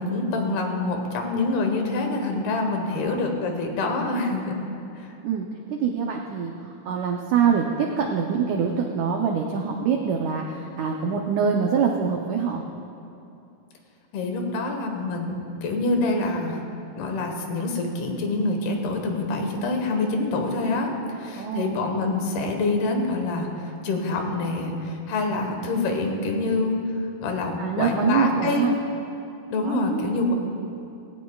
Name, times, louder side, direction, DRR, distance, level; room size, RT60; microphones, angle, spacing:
voice 1, 0.0-4.6 5.0-5.1 14.1-16.6 17.0-26.8 27.2-28.7 29.5-30.3, left 2 dB, 85° left, 3 dB, 3.3 m, -26 dB
voice 2, 2.9-3.3 5.2-12.6 21.4-21.8 27.6-28.7 29.6-30.3, right 6 dB, 90° right, 1 dB, 1.7 m, -25 dB
19.0 x 16.5 x 2.3 m, 2.7 s
omnidirectional pair, 4.4 m